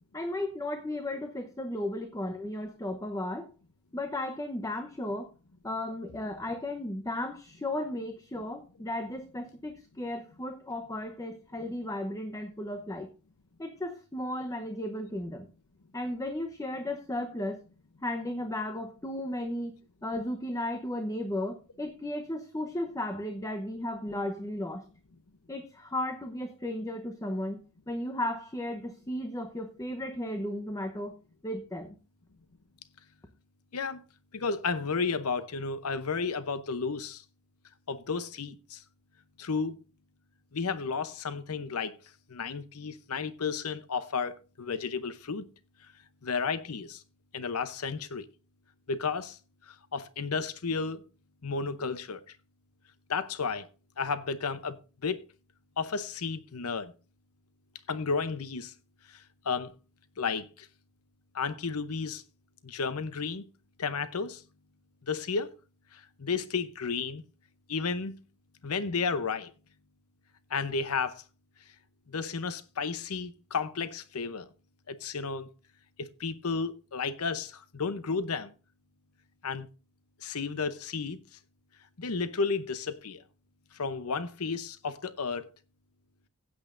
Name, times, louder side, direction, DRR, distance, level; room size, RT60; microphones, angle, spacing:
voice 1, 0.1-3.5 3.9-5.3 5.6-13.1 13.6-15.5 15.9-17.6 18.0-24.9 25.5-27.6 27.9-31.2 31.4-32.0, left 1 dB, 15° left, 0.9 m, -35 dB
voice 2, 34.3-37.2 37.9-38.8 39.4-39.8 40.5-41.9 42.3-45.4 46.2-47.0 47.3-48.3 48.9-49.4 49.7-51.0 51.4-52.2 53.1-53.7 54.0-54.8 55.0-55.2 55.8-56.9 57.9-58.7 59.1-59.7 60.2-60.7 61.3-62.2 62.6-63.4 63.8-64.4 65.1-65.5 65.9-67.2 67.7-68.1 68.6-69.5 70.5-71.2 72.1-74.5 74.9-75.5 76.0-78.5 79.4-79.7 80.2-81.2 82.0-83.2 83.7-85.5, left 5 dB, 85° left, 0.8 m, -32 dB
16.0 x 8.7 x 2.5 m
head